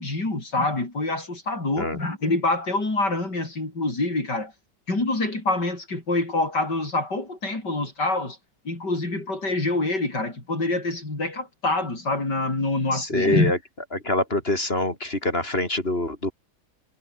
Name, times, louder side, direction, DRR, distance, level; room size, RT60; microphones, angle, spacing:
voice 1, 0.0-4.5 4.9-8.4 8.7-13.5, left 2 dB, 80° left, 7.2 m, -26 dB
voice 2, 12.9-13.6 13.9-16.3, left 1 dB, 35° left, 4.7 m, -25 dB
omnidirectional pair, 1.8 m